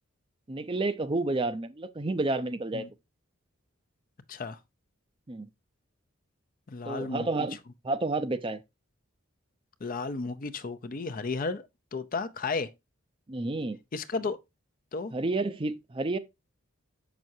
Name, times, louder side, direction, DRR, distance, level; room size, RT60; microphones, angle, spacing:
voice 1, 0.5-2.8 5.3-5.5 6.8-7.6 7.8-8.6 13.3-13.8 15.1-16.2, right 2 dB, 25° right, 0.5 m, -30 dB
voice 2, 4.3-4.6 6.7-7.3 9.8-11.7 11.9-12.7 13.9-14.4 14.9-15.1, left 4 dB, 40° left, 0.5 m, -33 dB
7.4 x 6.0 x 2.6 m
head